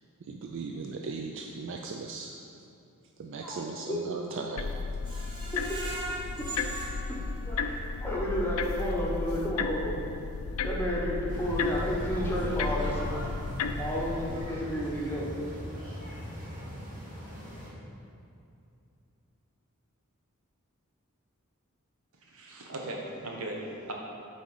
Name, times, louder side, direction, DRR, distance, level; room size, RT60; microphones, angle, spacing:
voice 1, 0.2-2.4 3.2-4.7 5.2-5.3 6.6-6.7, right 4 dB, 60° right, 3 dB, 0.4 m, -38 dB
voice 2, 3.4-4.0 5.5-6.8 7.1-10.0 10.6-13.0 13.8-15.3, equal, 10° left, -4 dB, 1.0 m, -32 dB
sound 1, 4.6-14.5, left 4 dB, 75° left, 0.4 m, -34 dB
Screech, 5.0-8.0 8.5-8.6 9.0-9.1, right 2 dB, 20° right, 1.0 m, -40 dB
sound 2, 11.3-17.7, equal, 40° right, 1.5 m, -39 dB
voice 3, 22.3-23.9, right 1 dB, 85° right, -1 dB, 1.1 m, -38 dB
7.4 x 4.2 x 4.8 m, 2.6 s
head